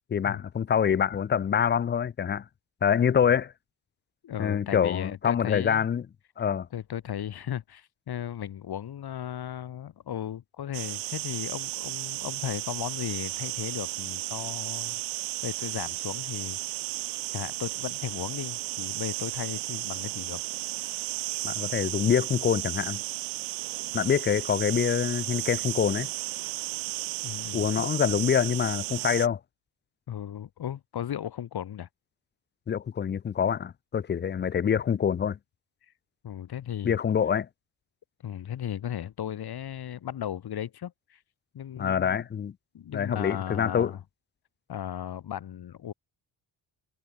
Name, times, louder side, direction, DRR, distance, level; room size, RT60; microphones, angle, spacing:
voice 1, 0.1-2.4 2.8-3.5 4.4-6.0 6.4-6.7 21.4-23.0 23.9-26.1 27.5-29.4 32.7-35.4 36.8-37.5 41.8-42.5 42.9-43.9, left 8 dB, 25° left, 0.4 m, -25 dB
voice 2, 4.2-5.9 6.7-15.0 15.4-16.6 17.3-20.4 27.2-27.9 30.1-31.9 36.2-37.0 38.2-41.2 41.5-42.3 42.7-44.0 44.7-45.9, left 10 dB, 55° left, 2.6 m, -36 dB
sound 1, 10.7-29.3, right 19 dB, 85° right, 0.8 m, -34 dB
cardioid pair, 115°, 44 cm